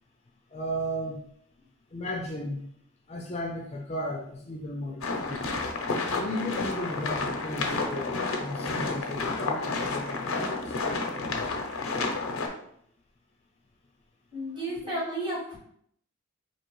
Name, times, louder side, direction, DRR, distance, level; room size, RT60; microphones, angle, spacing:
voice 1, 0.5-1.2 1.9-2.7 3.1-5.5 6.2-11.1 14.8-14.9, equal, 30° left, 0 dB, 0.4 m, -35 dB
sound 1, 5.0-12.5, left 3 dB, 85° left, 0.6 m, -30 dB
voice 2, 14.3-15.6, right 1 dB, 25° right, -6 dB, 1.6 m, -32 dB
4.4 x 2.9 x 3.0 m, 0.69 s
head